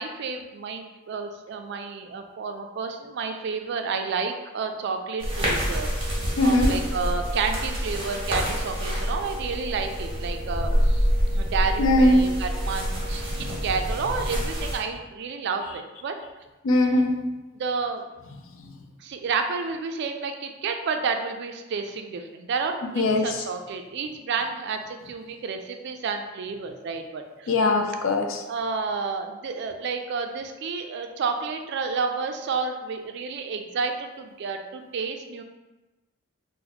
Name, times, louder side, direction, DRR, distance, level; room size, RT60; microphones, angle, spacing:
voice 1, 0.0-5.9 6.4-16.1 17.6-18.1 19.0-27.5 28.4-35.4, right 5 dB, 55° right, 6 dB, 0.3 m, -30 dB
sound 1, 5.2-14.8, equal, 25° right, 0.9 m, -27 dB
voice 2, 6.4-6.7 11.8-12.2 13.5-13.6 16.6-17.1 23.0-23.4 27.5-28.4, left 2 dB, 65° left, 3 dB, 0.4 m, -20 dB
2.9 x 2.1 x 3.9 m, 1.1 s
head